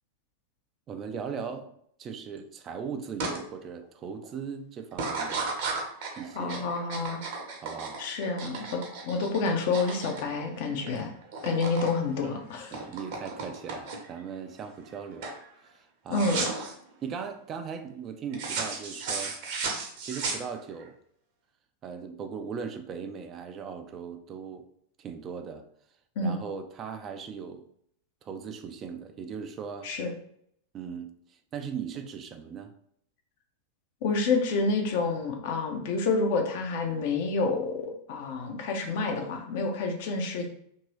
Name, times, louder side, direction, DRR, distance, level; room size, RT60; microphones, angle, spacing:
voice 1, 0.9-1.7 2.0-5.5 6.2-6.7 7.6-8.0 12.7-15.3 15.7-16.5 17.0-19.4 20.0-21.0 21.8-24.7 25.0-25.7 26.2-27.6 28.2-29.9 30.7-31.1 31.5-32.7, right 6 dB, 30° right, 7 dB, 0.3 m, -38 dB
sound 1, 3.2-3.4 3.8-4.2 4.9-11.0 11.2-11.9 12.2-14.2 14.7-15.0 15.2-15.4 16.1-16.7 18.3-20.8, right 4 dB, 50° right, 0.7 m, -34 dB
voice 2, 6.3-7.2 8.0-11.1 11.4-12.8 16.1-16.5 26.2-26.4 29.8-30.1 34.0-40.5, left 3 dB, 50° left, 4 dB, 0.6 m, -28 dB
2.9 x 2.6 x 3.1 m, 0.68 s
figure-of-eight pair, 90°, 0 cm